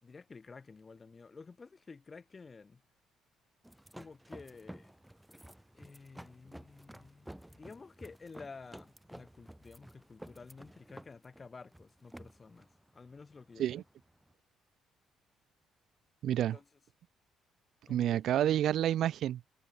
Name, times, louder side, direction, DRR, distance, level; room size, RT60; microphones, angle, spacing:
voice 1, 0.0-2.8 3.9-4.9 5.7-13.8 16.4-16.7 17.9-18.2, left 4 dB, 35° left, 4.2 m, -52 dB
sound 1, 3.6-14.3, right 1 dB, 5° right, 2.9 m, -53 dB
voice 2, 16.2-16.6 17.9-19.4, right 11 dB, 65° right, 0.5 m, -29 dB
hypercardioid pair, 55°, 0 cm